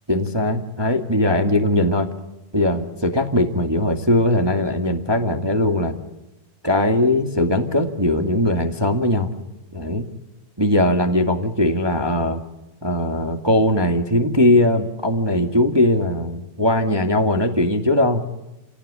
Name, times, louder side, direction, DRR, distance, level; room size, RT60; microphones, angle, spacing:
voice 1, 0.1-2.1 2.5-5.9 6.6-9.3 9.7-10.0 10.6-12.4 12.8-18.2, left 1 dB, 15° right, 5 dB, 0.8 m, -20 dB
30.0 x 18.0 x 9.9 m, 0.98 s
omnidirectional pair, 4.4 m